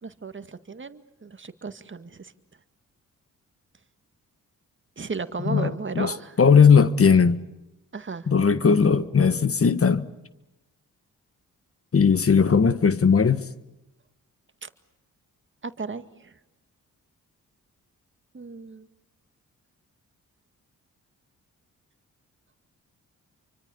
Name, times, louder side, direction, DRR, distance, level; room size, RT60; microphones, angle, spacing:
voice 1, 0.0-2.3 5.0-6.3 7.9-8.3 14.6-14.7 15.6-16.3 18.3-18.9, right 4 dB, 35° right, 2.0 m, -35 dB
voice 2, 5.5-7.4 8.3-10.1 11.9-13.4, left 6 dB, 40° left, 1.6 m, -18 dB
29.0 x 24.5 x 7.1 m
supercardioid pair, 55°, 34 cm